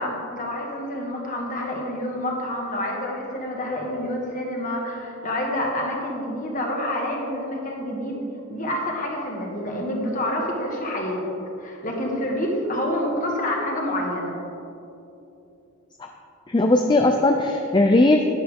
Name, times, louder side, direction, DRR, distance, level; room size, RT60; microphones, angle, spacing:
voice 1, 0.0-8.2 8.5-11.2 11.6-14.4, left 1 dB, 40° left, -1 dB, 1.7 m, -28 dB
voice 2, 16.5-18.2, left 2 dB, 20° left, 4 dB, 0.4 m, -18 dB
11.5 x 10.0 x 3.6 m, 2.9 s
head